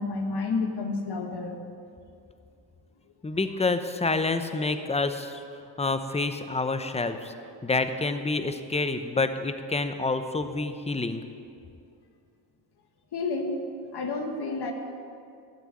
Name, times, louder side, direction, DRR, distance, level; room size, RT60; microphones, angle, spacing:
voice 1, 0.0-1.6 13.1-13.6 13.9-14.7, left 3 dB, 60° left, 4 dB, 1.7 m, -30 dB
voice 2, 3.2-5.4 5.8-7.3 7.6-11.2, left 3 dB, 15° left, 9 dB, 0.8 m, -28 dB
12.5 x 6.9 x 8.9 m, 2.4 s
cardioid pair, 100°, 43 cm